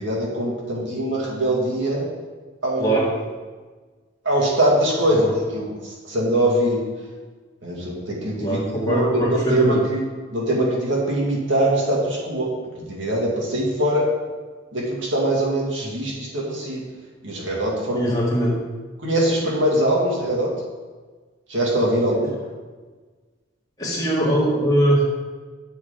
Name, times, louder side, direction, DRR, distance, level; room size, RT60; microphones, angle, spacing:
voice 1, 0.0-2.1 2.6-3.0 4.2-5.2 5.5-5.6 6.1-6.8 7.6-10.0 10.3-12.5 12.8-14.1 14.7-16.8 17.2-18.1 19.0-20.5 21.5-22.3, right 1 dB, 70° right, -3 dB, 2.4 m, -22 dB
voice 2, 2.8-3.2 5.1-5.3 8.4-9.8 17.9-18.5 23.8-25.0, right 1 dB, 20° left, -6 dB, 2.6 m, -21 dB
10.0 x 7.1 x 3.8 m, 1.4 s
head